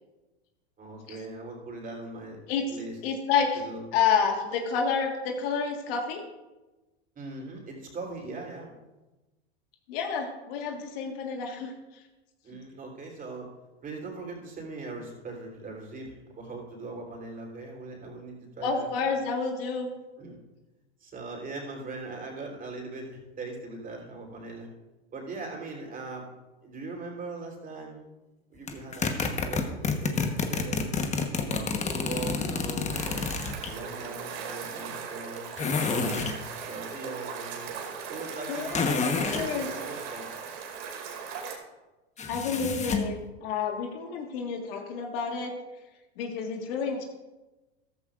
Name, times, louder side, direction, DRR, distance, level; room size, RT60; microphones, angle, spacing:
voice 1, 0.8-2.4 2.7-3.0 3.6-3.8 7.2-8.8 12.4-13.5 13.8-18.9 20.2-20.4 21.0-24.7 25.1-26.3 26.6-28.2 28.5-30.8 31.4-33.3 33.7-35.5 35.9-37.7 38.1-40.3, right 3 dB, 25° right, 0 dB, 3.6 m, -40 dB
voice 2, 3.0-3.6 3.9-6.2 9.9-11.7 18.6-19.9 38.5-39.0 39.3-39.7 42.3-45.5 46.2-47.0, left 6 dB, 60° left, 2 dB, 1.8 m, -29 dB
sound 1, 28.7-33.7 35.6-36.4 38.7-39.5 42.2-43.1, left 5 dB, 20° left, 1.2 m, -29 dB
sound 2, 32.9-41.6, right 6 dB, 55° right, 2.5 m, -38 dB
14.0 x 13.0 x 2.5 m, 1.1 s
hypercardioid pair, 105°, 33 cm